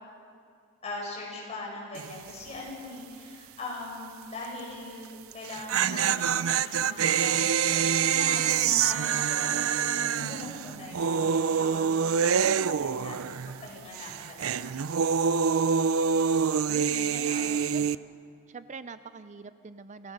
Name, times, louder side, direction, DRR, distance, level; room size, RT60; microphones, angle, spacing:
voice 1, 0.8-12.0 12.5-14.8 17.1-17.6, left 2 dB, 30° left, -2 dB, 6.9 m, -41 dB
sound 1, 1.9-2.3 2.6-2.7 5.3-13.7 13.9-18.0, right 7 dB, 85° right, 0.5 m, -26 dB
voice 2, 11.6-12.2 16.7-17.8 18.5-20.1, right 4 dB, 35° right, 12 dB, 0.5 m, -45 dB
28.0 x 17.5 x 6.6 m, 2.3 s
head